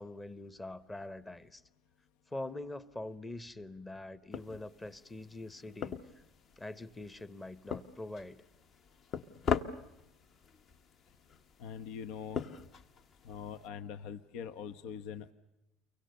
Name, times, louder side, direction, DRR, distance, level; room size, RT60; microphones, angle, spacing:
voice 1, 0.0-1.6 2.3-6.0 6.6-8.4, left 2 dB, 10° left, 16 dB, 0.9 m, -44 dB
sound 1, 4.3-13.7, left 6 dB, 35° left, 1.0 m, -41 dB
voice 2, 11.6-12.4 13.2-15.3, left 7 dB, 70° left, 10 dB, 1.0 m, -43 dB
29.5 x 24.0 x 6.6 m, 0.94 s
cardioid pair, 150°, 0 cm